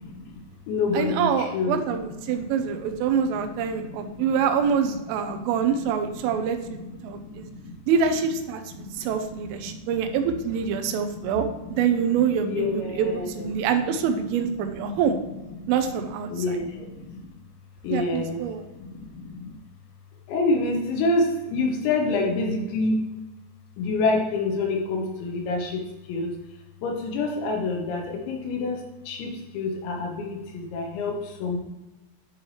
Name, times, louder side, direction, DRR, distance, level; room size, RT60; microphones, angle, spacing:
voice 1, 0.0-1.8 2.2-4.4 5.2-7.8 8.7-10.1 10.7-13.7 14.6-15.0 15.5-15.9 16.3-17.3 17.8-18.4 18.8-19.6 20.3-23.0 23.8-25.8 26.1-26.4 26.8-31.6, left 3 dB, 75° left, 1 dB, 3.0 m, -29 dB
voice 2, 0.9-7.5 7.9-15.2 15.7-16.3 17.9-18.6, right 7 dB, 85° right, 6 dB, 3.2 m, -25 dB
11.0 x 4.6 x 3.2 m, 1.1 s
omnidirectional pair, 5.7 m